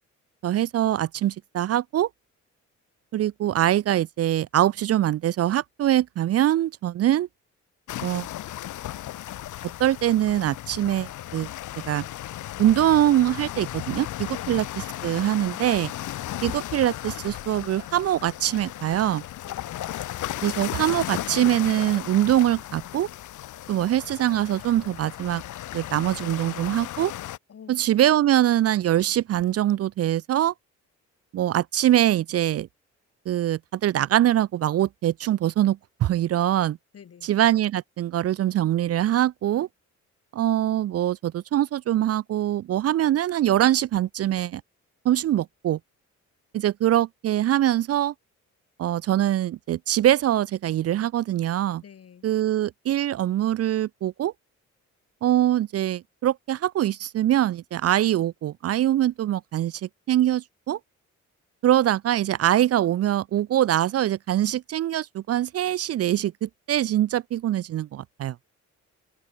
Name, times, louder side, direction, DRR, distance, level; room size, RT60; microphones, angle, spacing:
voice 1, 0.4-2.1 3.1-7.3 8.0-8.3 9.8-11.5 11.9-12.0 12.6-14.6 15.0-15.9 16.4-19.2 20.4-23.1 23.7-25.4 25.7-27.1 27.7-30.5 31.3-32.7 33.3-36.8 37.2-39.7 40.3-44.6 45.0-45.8 46.5-48.1 48.8-51.8 52.2-54.3 55.2-60.8 61.6-68.4, right 12 dB, 55° right, 0.5 m, -23 dB
sound 1, 7.9-27.4, left 13 dB, 80° left, 3.0 m, -35 dB
voice 2, 14.3-14.6 19.4-19.9 27.5-27.8 36.9-37.3 51.8-52.3, left 8 dB, 50° left, 5.3 m, -47 dB
open air
cardioid pair, 90°, 30 cm